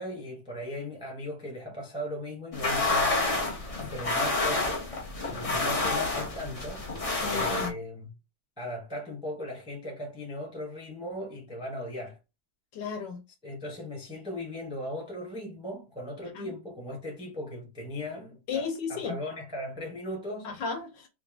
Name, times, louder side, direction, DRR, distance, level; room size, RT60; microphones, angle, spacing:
voice 1, 0.0-3.5 3.8-4.9 5.2-6.9 7.2-8.1 8.6-12.2 13.4-20.5, left 1 dB, 5° right, 0.6 m, -38 dB
sound 1, 2.5-7.7, left 3 dB, 50° left, 0.4 m, -29 dB
voice 2, 7.2-7.8 12.7-13.2 16.3-16.5 18.5-19.2 20.4-21.1, left 5 dB, 65° left, 1.5 m, -34 dB
3.7 x 2.6 x 3.4 m
omnidirectional pair, 2.2 m